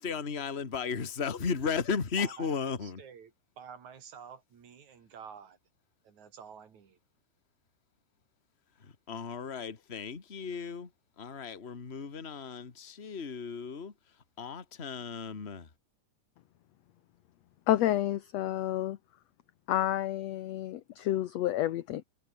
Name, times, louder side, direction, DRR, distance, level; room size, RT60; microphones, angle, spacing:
voice 1, 0.0-3.0 8.8-10.9 11.2-13.9 14.4-15.7, left 5 dB, 25° left, 1.8 m, -35 dB
voice 2, 2.2-5.6 6.0-7.0, right 7 dB, 65° right, 4.0 m, -49 dB
voice 3, 17.7-19.0 19.7-22.0, left 13 dB, 65° left, 2.0 m, -29 dB
omnidirectional pair, 3.7 m